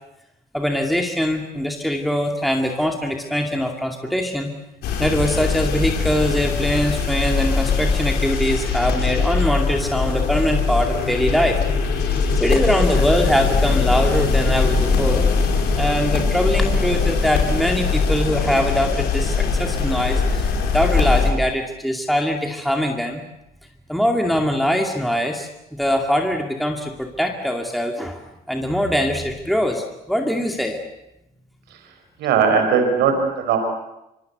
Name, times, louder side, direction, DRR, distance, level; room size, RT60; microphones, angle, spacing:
voice 1, 0.5-4.5 5.0-11.6 12.4-15.3 15.7-23.2 23.9-28.2 28.5-30.8, equal, ahead, 2 dB, 2.4 m, -22 dB
sound 1, 4.8-21.3, left 4 dB, 85° left, 5.3 m, -21 dB
voice 2, 32.2-33.6, right 6 dB, 85° right, 6 dB, 4.6 m, -18 dB
25.5 x 24.5 x 8.1 m, 0.89 s
cardioid pair, 110°, 17 cm